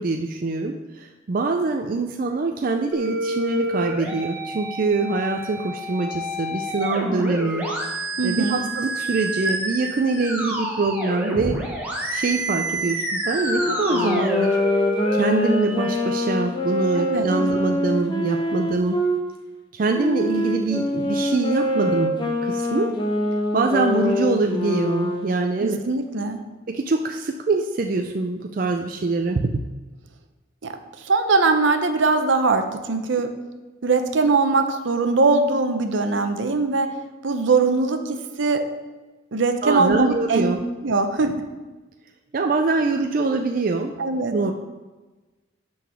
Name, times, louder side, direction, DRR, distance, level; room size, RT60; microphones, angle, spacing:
voice 1, 0.0-7.7 8.2-11.6 12.1-14.8 15.1-19.0 19.7-22.9 23.5-25.8 26.7-29.7 39.6-40.6 42.3-43.9 44.3-44.5, right 3 dB, 45° right, 3 dB, 0.4 m, -24 dB
sound 1, 2.9-15.9, right 1 dB, 10° right, 1.1 m, -28 dB
voice 2, 8.2-8.6 17.0-17.3 25.6-26.4 30.6-33.3 33.8-36.9 37.2-38.6 39.3-40.5 40.8-41.3 44.0-44.3, right 3 dB, 70° right, 7 dB, 0.7 m, -21 dB
Wind instrument woodwind instrument, 13.4-19.2 19.9-25.3, left 1 dB, 25° left, 0.8 m, -24 dB
8.5 x 4.0 x 6.2 m, 1.2 s
head